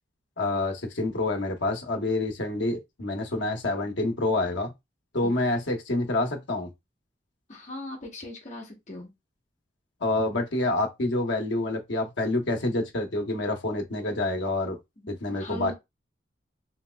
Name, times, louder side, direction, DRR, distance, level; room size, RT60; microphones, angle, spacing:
voice 1, 0.4-4.7 5.1-6.7 10.0-14.8 15.1-15.7, left 2 dB, 75° left, 0.9 m, -27 dB
voice 2, 7.5-9.1 15.3-15.7, left 1 dB, 40° left, 1.1 m, -39 dB
3.1 x 2.8 x 2.3 m
head